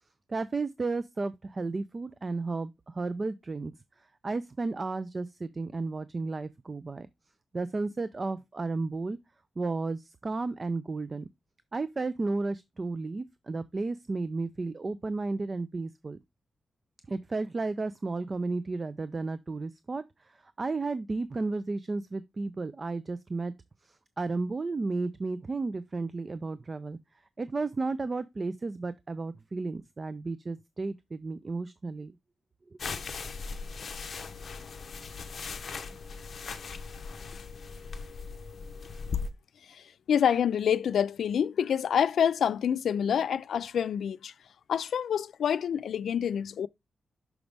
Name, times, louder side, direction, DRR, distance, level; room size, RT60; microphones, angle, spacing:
voice 1, 0.3-3.7 4.2-7.1 7.5-9.2 9.6-11.3 11.7-16.2 17.1-23.5 23.8-27.0 27.4-32.1, right 3 dB, 30° right, 0.3 m, -33 dB
sound 1, 32.8-39.3, left 5 dB, 50° left, 0.7 m, -38 dB
voice 2, 39.7-44.3 44.7-46.7, left 8 dB, 85° left, 0.3 m, -27 dB
6.0 x 5.2 x 3.3 m
wide cardioid pair, 155°, 0 cm